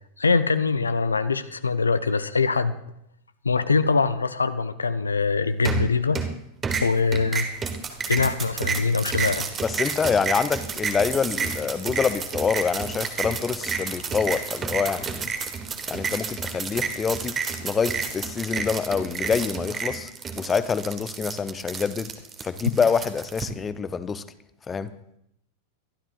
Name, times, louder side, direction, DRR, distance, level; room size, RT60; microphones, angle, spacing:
voice 1, 0.2-2.7 3.4-6.2 6.8-7.5 8.1-9.5, left 4 dB, 75° left, 13 dB, 0.5 m, -23 dB
sound 1, 5.7-6.4 6.6-23.4, right 5 dB, 20° right, 1.4 m, -30 dB
voice 2, 9.6-15.3 15.9-20.1 20.4-22.1 22.4-24.2 24.7-24.9, left 6 dB, 20° left, 14 dB, 0.6 m, -26 dB
22.5 x 12.5 x 2.5 m, 0.78 s
figure-of-eight pair, 90°, 0 cm